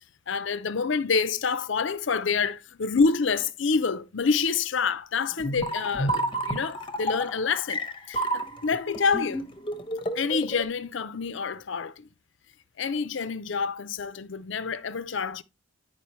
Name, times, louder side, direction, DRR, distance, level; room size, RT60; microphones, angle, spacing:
voice 1, 0.3-7.8 8.1-9.5 10.1-12.1 12.8-15.4, left 5 dB, 70° left, 0.6 m, -27 dB
sound 1, 5.4-10.6, right 1 dB, 25° left, 0.9 m, -30 dB
10.0 x 5.0 x 3.1 m
head